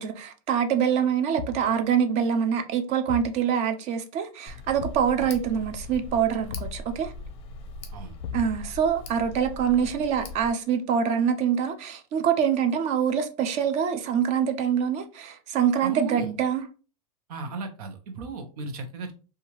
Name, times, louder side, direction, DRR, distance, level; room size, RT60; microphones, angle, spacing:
voice 1, 0.0-7.1 8.3-16.6, right 8 dB, 35° right, 0.5 m, -25 dB
Thump thud, 1.4-1.8 3.1-3.4 4.8-5.1 6.5-6.9 8.2-8.8, left 7 dB, 90° left, 0.4 m, -36 dB
Tick, 4.5-10.5, left 2 dB, 30° left, 0.6 m, -40 dB
voice 2, 15.8-16.3 17.3-19.1, right 3 dB, 75° right, 0.7 m, -36 dB
2.7 x 2.3 x 3.0 m
supercardioid pair, 145°, 19 cm